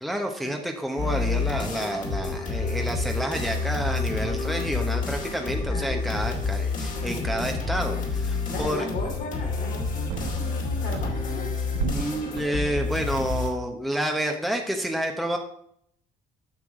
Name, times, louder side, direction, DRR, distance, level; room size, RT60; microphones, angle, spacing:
voice 1, 0.0-8.8 11.9-15.4, right 1 dB, ahead, 2 dB, 1.0 m, -29 dB
sound 1, 1.0-13.5, left 4 dB, 50° left, 2.4 m, -29 dB
voice 2, 5.6-6.1 8.5-11.5, left 3 dB, 65° left, 2 dB, 2.6 m, -36 dB
sound 2, 8.6-9.2 9.7-10.6 10.8-12.8, right 6 dB, 80° right, 1.0 m, -34 dB
8.6 x 6.1 x 4.9 m, 0.68 s
cardioid pair, 110°, 17 cm